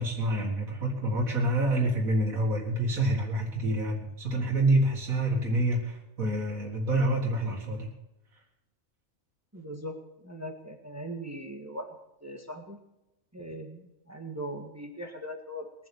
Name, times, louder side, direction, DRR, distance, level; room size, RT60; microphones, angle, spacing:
voice 1, 0.0-7.9, right 1 dB, 85° right, -3 dB, 2.4 m, -27 dB
voice 2, 9.5-11.9 12.2-12.8 13.3-15.9, equal, 10° right, 4 dB, 1.6 m, -40 dB
21.0 x 7.6 x 7.0 m, 0.96 s
omnidirectional pair, 1.4 m